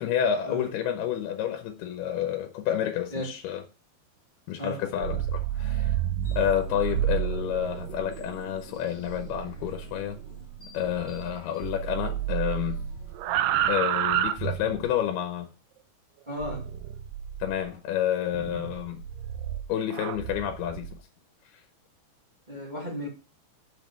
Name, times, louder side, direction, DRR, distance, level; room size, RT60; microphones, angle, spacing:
voice 1, 0.0-3.6 4.5-5.9 6.4-10.2 10.7-12.8 13.7-15.5 17.4-19.0 19.7-20.9, left 10 dB, 90° left, 2.9 m, -29 dB
sound 1, 4.9-11.3 11.6-15.0 16.4-17.7 18.3-20.9, right 11 dB, 85° right, 1.9 m, -31 dB
sound 2, 6.2-13.7, left 2 dB, 25° left, 1.4 m, -50 dB
voice 2, 16.3-16.7 22.5-23.1, equal, 20° right, 1.1 m, -35 dB
6.5 x 5.3 x 6.4 m
omnidirectional pair, 4.5 m